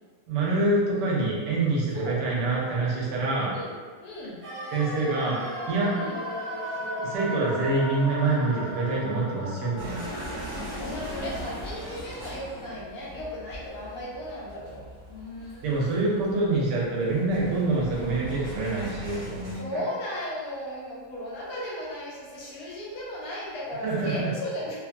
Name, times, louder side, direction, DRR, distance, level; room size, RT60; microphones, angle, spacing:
voice 1, 0.3-3.5 4.7-5.4 5.7-6.0 7.0-10.0 15.6-19.8 23.8-24.3, right 2 dB, 80° right, -5 dB, 1.3 m, -26 dB
voice 2, 1.9-2.6 3.5-3.7 4.0-4.4 5.9-6.2 10.8-16.2 19.6-24.8, left 1 dB, 70° left, -5 dB, 1.1 m, -36 dB
sound 1, 4.4-14.3 14.6-14.7, equal, 20° right, 1.0 m, -37 dB
sound 2, 9.8-19.6, equal, 40° right, 0.6 m, -40 dB
2.9 x 2.4 x 2.4 m, 1.5 s
omnidirectional pair, 1.9 m